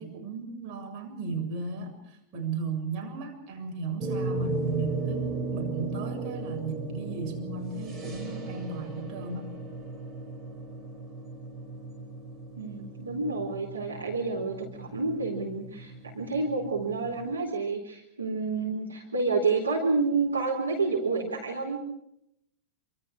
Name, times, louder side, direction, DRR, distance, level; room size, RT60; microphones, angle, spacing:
voice 1, 0.0-2.0 2.3-9.5, right 4 dB, 35° right, 2 dB, 7.2 m, -35 dB
sound 1, 4.0-17.3, right 3 dB, 20° right, 4.4 m, -36 dB
voice 2, 12.6-21.8, right 3 dB, 80° right, 1 dB, 3.9 m, -29 dB
27.5 x 25.5 x 4.9 m, 0.76 s
figure-of-eight pair, 90°, 0 cm